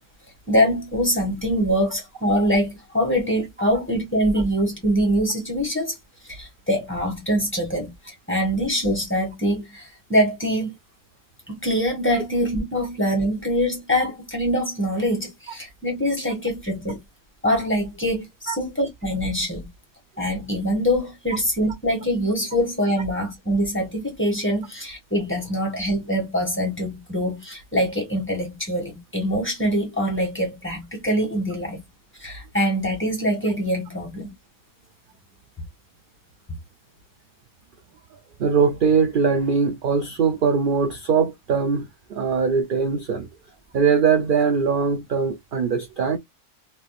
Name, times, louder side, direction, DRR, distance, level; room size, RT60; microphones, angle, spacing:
voice 1, 0.5-5.9 6.3-10.7 11.5-17.0 17.4-19.7 20.2-31.8 32.2-34.3, equal, 10° left, 1.7 m, -24 dB
voice 2, 38.4-43.3 43.7-46.2, right 5 dB, 70° right, 0.5 m, -21 dB
3.1 x 3.1 x 2.4 m
omnidirectional pair, 1.5 m